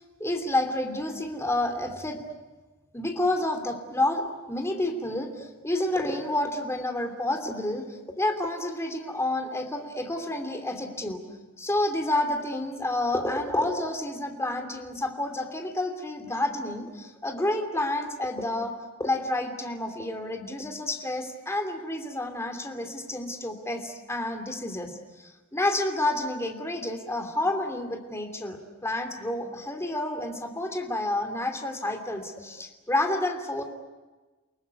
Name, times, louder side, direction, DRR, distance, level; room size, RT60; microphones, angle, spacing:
voice 1, 0.2-2.2 2.9-11.2 11.6-18.7 19.0-33.6, left 1 dB, 15° left, 4 dB, 2.9 m, -29 dB
29.5 x 19.5 x 9.6 m, 1.2 s
head